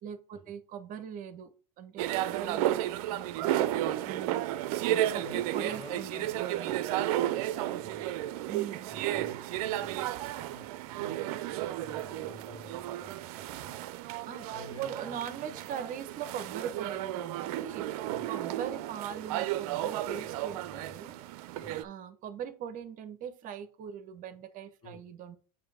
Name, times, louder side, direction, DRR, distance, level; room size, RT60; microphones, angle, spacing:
voice 1, 0.0-4.4 4.8-6.8 8.5-8.9 14.3-14.5 14.8-21.1 21.8-25.4, right 8 dB, 45° right, 11 dB, 0.8 m, -41 dB
sound 1, 2.0-21.8, right 13 dB, 70° right, 0.5 m, -33 dB
voice 2, 5.2-6.4 6.6-8.1 8.9-13.8 14.5-15.6 18.0-18.3 20.1-21.2 21.6-21.8 24.8-25.0, equal, 25° left, 4 dB, 2.0 m, -51 dB
6.7 x 2.7 x 5.4 m, 0.39 s
supercardioid pair, 110°, 20 cm